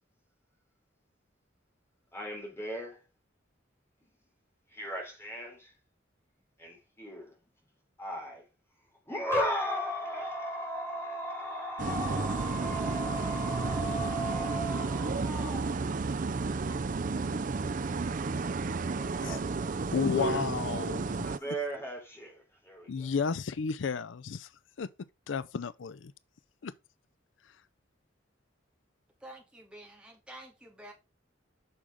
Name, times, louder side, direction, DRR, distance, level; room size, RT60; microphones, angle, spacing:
voice 1, 2.1-3.0 4.7-5.7 6.6-7.3 8.0-8.5 9.1-16.8 18.8-19.4 20.2-20.5 21.2-23.1, equal, 15° left, 3.5 m, -37 dB
sound 1, 11.8-21.4, right 4 dB, 45° right, 0.5 m, -32 dB
voice 2, 19.9-21.3 22.9-24.5 24.8-24.9 25.3-26.1 26.6-26.7, left 5 dB, 80° left, 0.5 m, -32 dB
voice 3, 29.2-30.9, right 1 dB, 5° right, 2.6 m, -49 dB
8.8 x 6.3 x 3.6 m
head